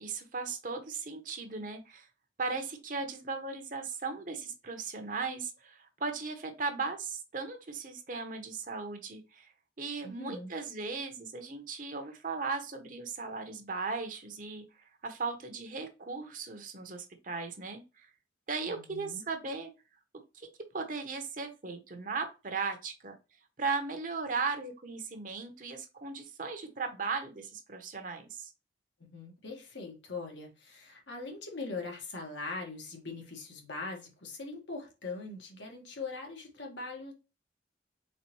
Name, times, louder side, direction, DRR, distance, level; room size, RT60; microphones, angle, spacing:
voice 1, 0.0-2.1 2.4-9.5 9.8-14.6 15.0-18.1 18.5-19.7 20.3-23.1 23.6-28.5, right 4 dB, 45° right, 0.8 m, -37 dB
voice 2, 10.0-10.5 18.7-19.2 29.1-37.1, left 3 dB, 80° left, 1.6 m, -41 dB
4.1 x 4.0 x 3.0 m
head